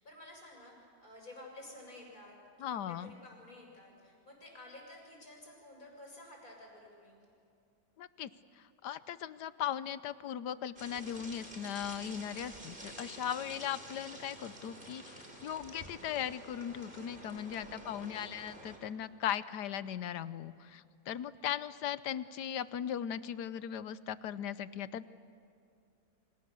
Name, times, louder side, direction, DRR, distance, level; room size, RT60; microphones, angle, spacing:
voice 1, 0.0-7.2 17.7-18.4, left 1 dB, 60° left, -1 dB, 7.3 m, -52 dB
voice 2, 2.6-3.1 8.0-8.3 8.8-25.1, left 9 dB, 90° left, 15 dB, 1.4 m, -38 dB
sound 1, 10.8-18.8, right 1 dB, 30° right, 4.0 m, -50 dB
29.5 x 26.0 x 7.0 m, 2.5 s
omnidirectional pair, 1.7 m